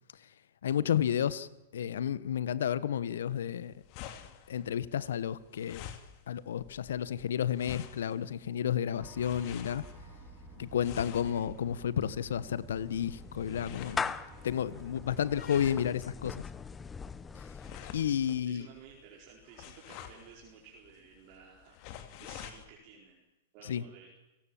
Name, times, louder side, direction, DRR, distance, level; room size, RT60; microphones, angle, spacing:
voice 1, 0.6-3.7 4.5-5.8 6.3-9.8 10.6-14.1 14.4-16.5 17.3-17.4 17.9-18.7 23.6-23.8, left 9 dB, 75° left, 1.3 m, -31 dB
sound 1, 3.3-22.7, left 10 dB, 45° left, 2.6 m, -50 dB
sound 2, 9.0-15.3, right 3 dB, 15° right, 7.1 m, -51 dB
voice 2, 11.0-11.4 18.5-21.8 22.2-23.2 23.5-24.1, right 6 dB, 45° right, 4.5 m, -54 dB
Clapping / Meow, 12.2-18.5, left 5 dB, 15° left, 1.0 m, -42 dB
29.0 x 17.5 x 7.3 m
hypercardioid pair, 115°, 0 cm